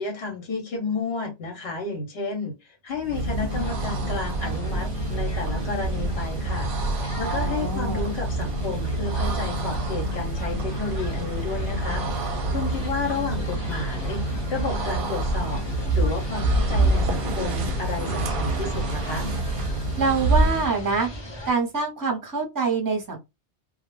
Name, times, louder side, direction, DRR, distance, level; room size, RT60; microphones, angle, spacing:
voice 1, 0.0-6.7 6.9-12.0 12.5-14.2 14.5-19.3, left 4 dB, 70° left, 1.0 m, -32 dB
sound 1, 3.0-20.8, right 2 dB, 60° right, 0.7 m, -26 dB
sound 2, 3.5-21.5, left 1 dB, 30° left, 0.6 m, -39 dB
voice 2, 7.2-8.0 20.0-21.1 21.4-23.2, right 4 dB, 20° right, 0.8 m, -25 dB
2.3 x 2.1 x 3.1 m
omnidirectional pair, 1.1 m